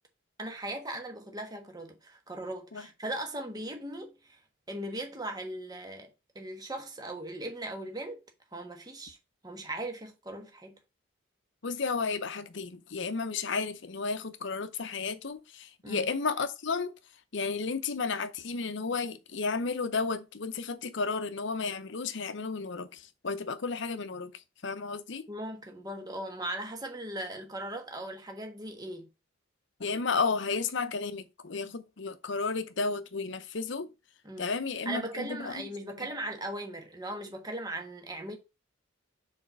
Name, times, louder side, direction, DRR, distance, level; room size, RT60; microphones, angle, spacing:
voice 1, 0.4-4.4 4.7-6.1 6.3-8.2 8.5-9.2 9.4-10.8 15.8-16.1 25.3-29.1 34.2-34.5 34.8-38.4, right 1 dB, 20° right, 1.2 m, -38 dB
voice 2, 11.6-16.9 17.3-25.3 29.8-33.9 34.4-35.7, left 4 dB, 60° left, 0.7 m, -33 dB
4.8 x 4.2 x 5.9 m
head